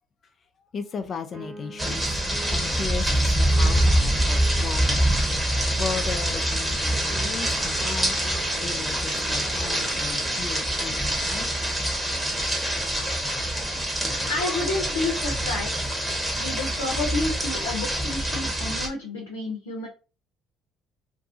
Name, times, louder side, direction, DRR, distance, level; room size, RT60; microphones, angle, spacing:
voice 1, 0.7-2.2 2.5-5.1 5.4-8.2 8.6-11.8 12.4-12.5, left 6 dB, 45° left, 0.6 m, -36 dB
sound 1, 1.3-5.4 6.3-10.3, right 3 dB, 50° right, 1.4 m, -44 dB
sound 2, 1.8-18.9, right 1 dB, 10° right, 1.1 m, -25 dB
sound 3, 11.6-13.9 14.4-18.2, left 1 dB, 10° left, 0.8 m, -44 dB
voice 2, 14.3-16.0 16.3-19.9, left 2 dB, 85° left, 0.7 m, -30 dB
2.7 x 2.3 x 2.6 m
hypercardioid pair, 55°, 0 cm